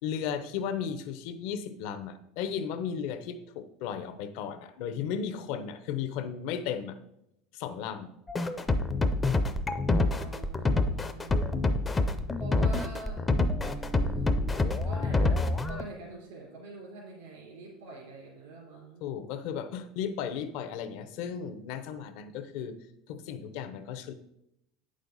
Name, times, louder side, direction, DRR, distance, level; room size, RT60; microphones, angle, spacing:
voice 1, 0.0-7.0 7.5-8.1 19.0-22.8 23.1-24.1, left 8 dB, 60° left, 10 dB, 0.7 m, -35 dB
sound 1, 8.3-15.8, left 2 dB, 15° left, 0.4 m, -27 dB
voice 2, 10.1-11.4 12.4-13.2 14.0-19.1, right 3 dB, 90° right, -4 dB, 3.3 m, -45 dB
8.8 x 6.4 x 4.0 m, 0.80 s
cardioid pair, 160°, 0 cm